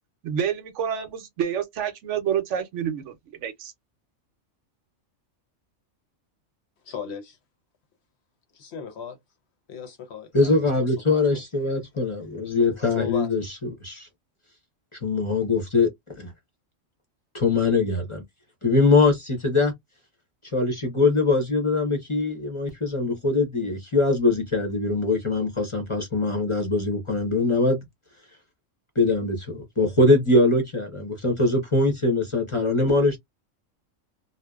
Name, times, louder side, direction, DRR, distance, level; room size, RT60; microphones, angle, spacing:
voice 1, 0.2-3.1 3.4-3.7, right 8 dB, 70° right, 0.9 m, -28 dB
voice 2, 6.8-7.4 8.5-9.2 9.7-11.4 12.9-13.3, left 7 dB, 60° left, 0.9 m, -36 dB
voice 3, 10.3-13.5 13.8-14.1 14.9-15.9 16.2-16.3 17.3-18.2 18.6-19.7 20.5-27.8 29.0-33.2, left 3 dB, 30° left, 0.7 m, -22 dB
2.7 x 2.1 x 2.2 m
omnidirectional pair, 1.4 m